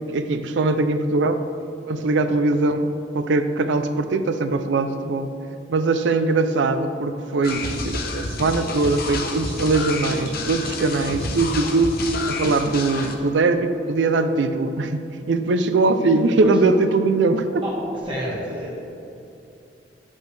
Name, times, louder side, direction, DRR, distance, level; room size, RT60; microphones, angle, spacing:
voice 1, 0.1-1.4 1.9-5.3 5.7-17.7, right 3 dB, 80° right, 9 dB, 0.5 m, -21 dB
sound 1, 7.4-13.2, left 3 dB, 55° left, 0.7 m, -29 dB
voice 2, 16.0-16.6 17.6-17.8 18.0-18.7, right 1 dB, 30° right, -5 dB, 1.2 m, -28 dB
10.5 x 5.3 x 3.3 m, 2.8 s
head